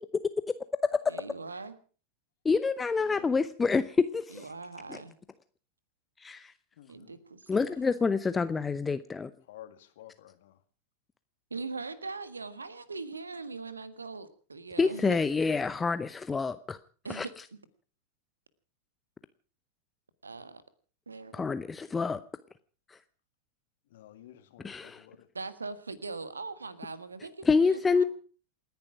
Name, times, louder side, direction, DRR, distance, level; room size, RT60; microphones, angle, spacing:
voice 1, 1.1-1.8 4.3-5.1 6.9-7.8 11.5-15.3 17.0-17.3 20.2-20.6 21.1-21.4 25.3-28.0, right 3 dB, 75° right, 1.6 m, -41 dB
voice 2, 2.4-4.5 4.9-5.0 6.2-6.5 7.5-9.3 14.8-16.8 17.1-17.3 21.3-22.2 22.9-23.0 24.6-25.0 27.5-28.0, left 4 dB, 15° left, 0.7 m, -27 dB
voice 3, 3.0-3.4 6.8-7.2 9.5-10.6 23.9-25.3, left 12 dB, 55° left, 2.1 m, -52 dB
28.5 x 10.5 x 4.8 m
figure-of-eight pair, 90°, 0 cm